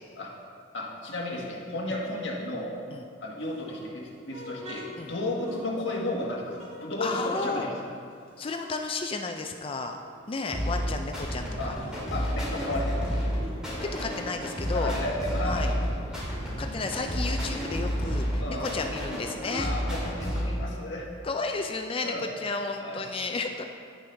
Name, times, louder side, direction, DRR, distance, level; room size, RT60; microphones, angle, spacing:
voice 1, 0.7-2.8 3.2-7.8 11.6-11.8 12.1-13.3 14.7-15.7 18.4-18.8 19.5-21.1 22.0-22.3 22.8-23.0, left 1 dB, 65° left, -3 dB, 1.7 m, -33 dB
sound 1, 3.4-6.1 6.5-9.4 9.7-11.0 11.4-13.7 14.0-16.5 16.9-17.0 17.2-20.7, equal, 35° right, 1.5 m, -47 dB
voice 2, 7.0-7.7 8.4-10.0 10.3-11.8 12.1-12.4 13.9-14.9 15.4-15.7 16.6-19.7 21.2-23.6, left 3 dB, 25° left, 5 dB, 0.4 m, -33 dB
sound 2, 10.5-20.5, equal, 5° right, 2.2 m, -31 dB
16.0 x 5.4 x 3.4 m, 2.4 s
head